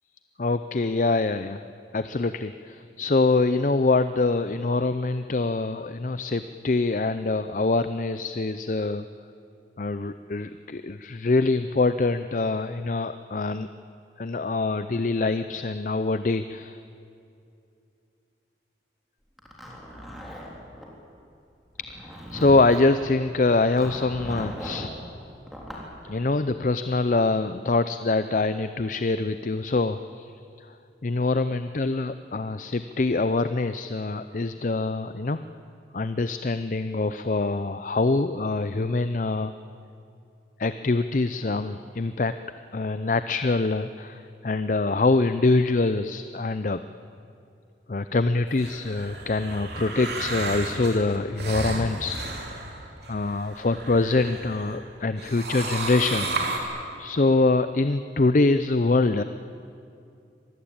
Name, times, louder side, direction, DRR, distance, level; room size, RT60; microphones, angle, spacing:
voice 1, 0.4-1.6 1.9-9.0 9.8-13.7 14.2-16.8 22.1-24.9 26.0-30.3 31.0-35.4 35.9-39.5 40.6-42.3 42.7-46.8 47.9-52.2 53.1-56.3 56.6-59.2, left 3 dB, 45° left, 11 dB, 0.5 m, -24 dB
Zipper (clothing), 19.4-20.9 21.7-23.0 23.8-24.9 25.5-25.9, equal, ahead, 3.5 m, -38 dB
sound 1, 48.5-54.8 55.1-56.6, right 3 dB, 65° right, 3.4 m, -33 dB
25.0 x 19.0 x 8.8 m, 2.6 s
head